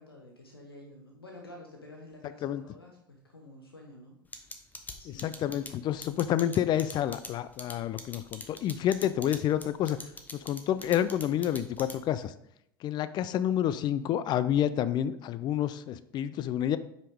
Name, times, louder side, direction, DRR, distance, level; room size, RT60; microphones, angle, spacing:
voice 1, 0.0-4.5 5.0-5.4, left 1 dB, 90° left, 0 dB, 1.1 m, -50 dB
sound 1, 4.3-12.2, left 2 dB, 15° left, 1.1 m, -42 dB
voice 2, 5.2-10.0 10.3-12.3 12.8-16.8, left 11 dB, 35° left, 14 dB, 0.4 m, -29 dB
8.3 x 5.2 x 3.6 m, 0.75 s
figure-of-eight pair, 75°, 12 cm